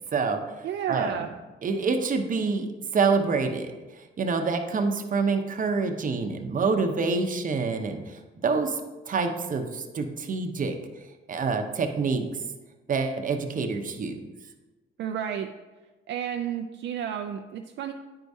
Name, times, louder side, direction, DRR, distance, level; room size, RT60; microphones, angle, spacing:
voice 1, 0.6-1.3 15.0-15.5 16.1-17.9, right 9 dB, 65° right, 4 dB, 0.4 m, -31 dB
voice 2, 1.6-3.7 4.2-8.8 9.1-10.8 11.3-12.2 12.9-14.2, right 4 dB, 40° right, 6 dB, 0.8 m, -26 dB
9.7 x 4.7 x 2.7 m, 1.2 s
cardioid pair, 90°, 20 cm